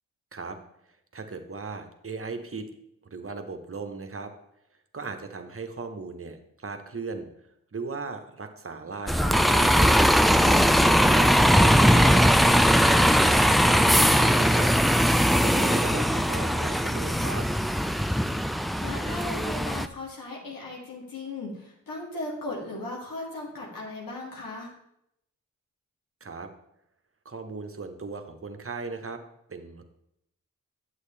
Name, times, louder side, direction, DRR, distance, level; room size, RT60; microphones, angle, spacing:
voice 1, 1.1-2.7 3.0-4.3 4.9-7.3 7.7-9.9 10.9-14.7 15.3-17.5 26.2-26.5 27.2-29.2 29.5-29.8, right 4 dB, 40° right, 6 dB, 1.1 m, -37 dB
Bus, 9.1-19.9, equal, ahead, 0.3 m, -20 dB
voice 2, 10.4-11.1 15.5-15.8 18.8-24.7, left 2 dB, 85° left, -3 dB, 2.2 m, -37 dB
8.1 x 7.7 x 3.3 m, 0.78 s
cardioid pair, 45°, 33 cm